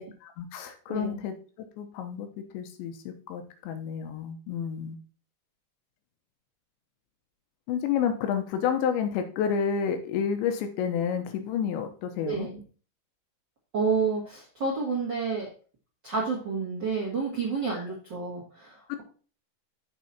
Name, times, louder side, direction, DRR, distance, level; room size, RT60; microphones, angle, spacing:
voice 1, 0.2-2.3 2.5-5.0 7.7-12.5 17.7-17.8 18.9-19.0, left 7 dB, 85° left, 7 dB, 3.2 m, -30 dB
voice 2, 0.9-1.2 12.2-12.6 13.7-15.5 16.0-19.0, right 4 dB, 55° right, -3 dB, 1.2 m, -30 dB
7.6 x 6.2 x 4.2 m, 0.40 s
omnidirectional pair, 5.2 m